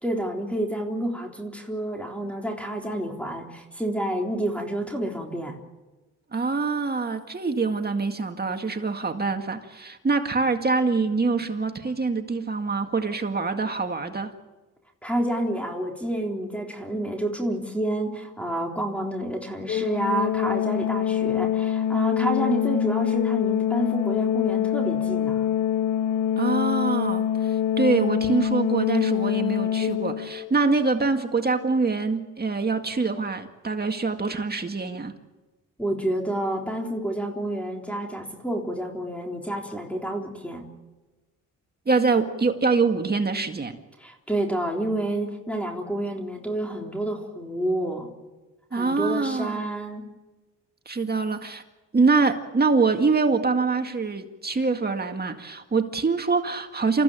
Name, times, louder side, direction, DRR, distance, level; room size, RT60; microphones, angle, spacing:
voice 1, 0.0-5.6 15.0-25.5 35.8-40.7 44.0-48.1 48.7-50.0, right 1 dB, 5° left, 1 dB, 3.8 m, -29 dB
voice 2, 6.3-14.3 26.4-35.1 41.9-43.8 48.7-49.6 50.9-51.6 51.9-57.0, right 4 dB, 30° right, 5 dB, 2.0 m, -24 dB
Organ, 19.7-30.5, left 9 dB, 65° left, 2.3 m, -25 dB
28.0 x 15.0 x 8.9 m, 1.2 s
cardioid pair, 90°, 33 cm